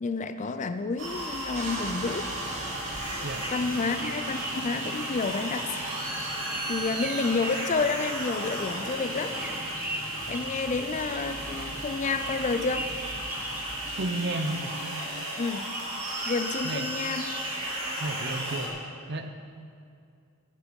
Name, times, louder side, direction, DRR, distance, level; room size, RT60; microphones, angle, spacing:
voice 1, 0.0-2.3 3.5-5.8 6.2-6.4 6.7-9.3 10.3-12.9 15.4-15.7 16.3-17.3, left 4 dB, 35° left, 10 dB, 0.4 m, -30 dB
sound 1, 1.0-18.7, right 1 dB, 75° right, 2.7 m, -34 dB
sound 2, 1.5-14.4, right 1 dB, 35° right, 1.7 m, -42 dB
sound 3, 2.9-11.7 12.0-14.2 14.5-16.6, right 1 dB, 10° right, 0.7 m, -41 dB
voice 2, 13.9-14.7 16.6-16.9 18.0-18.7 19.1-19.3, right 2 dB, 50° right, 7 dB, 0.8 m, -32 dB
11.5 x 9.8 x 5.2 m, 2.4 s
head